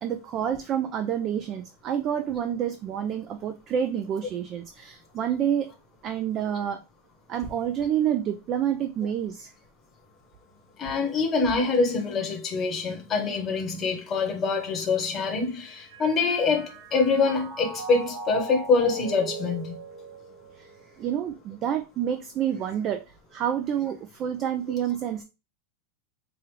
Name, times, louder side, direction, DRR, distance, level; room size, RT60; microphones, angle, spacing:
voice 1, 0.0-5.7 6.0-6.8 7.3-9.5 20.6-20.7 21.0-23.0 23.3-25.2, right 9 dB, 25° right, 0.3 m, -28 dB
voice 2, 10.8-19.7, left 4 dB, 20° left, 0.9 m, -25 dB
Mallet percussion, 14.9-21.0, right 4 dB, 60° right, 1.3 m, -40 dB
4.6 x 2.4 x 3.1 m
supercardioid pair, 165°, 0 cm